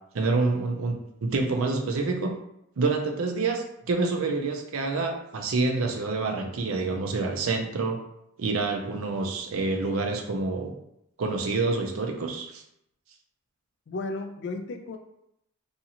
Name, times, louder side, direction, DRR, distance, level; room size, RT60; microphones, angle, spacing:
voice 1, 0.1-2.4 2.8-8.0 8.4-10.8 11.2-12.6, right 3 dB, 90° right, 3 dB, 0.5 m, -27 dB
voice 2, 13.9-15.0, left 3 dB, 60° left, 5 dB, 0.4 m, -34 dB
2.7 x 2.4 x 2.8 m, 0.78 s
head